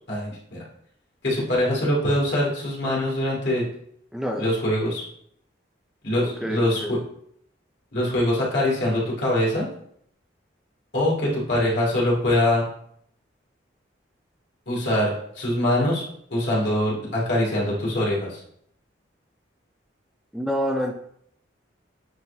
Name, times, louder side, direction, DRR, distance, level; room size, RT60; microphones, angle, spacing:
voice 1, 0.1-0.6 1.2-3.7 4.4-5.0 6.0-7.0 7.9-9.7 10.9-12.6 14.7-16.0 16.3-18.4, left 1 dB, 60° left, -5 dB, 2.6 m, -23 dB
voice 2, 4.1-4.5 6.4-6.9 20.3-21.0, equal, 5° right, 0 dB, 0.5 m, -27 dB
9.3 x 4.5 x 2.8 m, 0.68 s
head